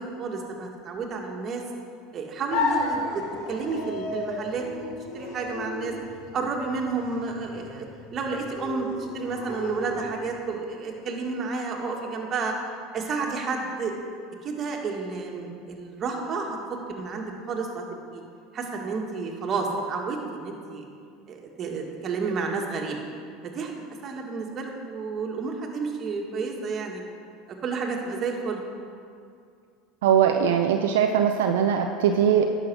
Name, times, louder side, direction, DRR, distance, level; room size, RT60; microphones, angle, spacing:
voice 1, 0.0-1.6 2.1-4.8 5.1-5.9 6.3-8.9 9.1-12.5 12.9-13.9 14.4-16.6 16.9-17.8 18.1-18.2 18.5-20.9 21.3-23.0 23.4-23.7 24.0-27.0 27.5-28.6, right 4 dB, 40° right, 1 dB, 1.9 m, -31 dB
sound 1, 2.5-10.5, left 3 dB, 70° left, 1.5 m, -33 dB
voice 2, 30.0-32.5, right 8 dB, 80° right, 4 dB, 0.5 m, -21 dB
10.5 x 6.6 x 6.3 m, 2.3 s
hypercardioid pair, 90°, 0 cm